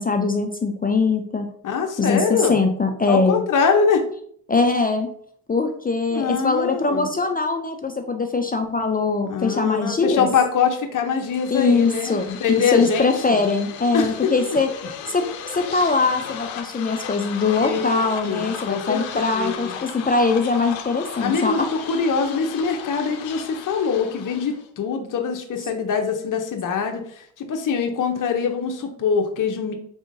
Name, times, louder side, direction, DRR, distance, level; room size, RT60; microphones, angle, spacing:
voice 1, 0.0-1.5 2.0-3.4 4.5-5.1 5.5-10.3 11.5-14.7 15.1-21.7, left 4 dB, 20° left, 5 dB, 0.4 m, -22 dB
voice 2, 1.6-2.6 3.1-4.0 6.1-7.1 9.2-13.4 13.9-14.6 17.6-19.0 19.3-19.8 21.2-29.7, left 6 dB, 45° left, 4 dB, 0.7 m, -23 dB
sound 1, 11.1-24.7, left 8 dB, 85° left, 0.6 m, -36 dB
3.6 x 3.4 x 2.6 m, 0.63 s
supercardioid pair, 55°, 45 cm